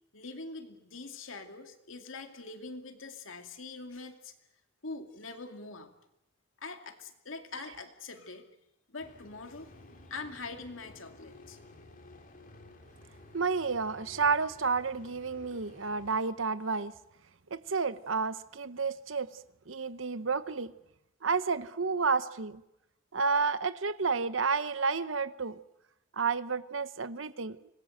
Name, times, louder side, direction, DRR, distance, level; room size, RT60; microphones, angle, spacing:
voice 1, 0.1-4.3 4.8-5.9 6.6-8.6 8.9-9.7 10.1-11.6, left 3 dB, 75° left, 2.5 m, -43 dB
sound 1, 9.0-16.2, left 1 dB, 40° left, 3.3 m, -54 dB
voice 2, 13.3-16.9 17.5-19.4 19.7-20.7 21.2-22.6 23.1-25.6 26.2-27.6, right 4 dB, 70° right, 0.9 m, -30 dB
25.5 x 20.0 x 7.9 m
head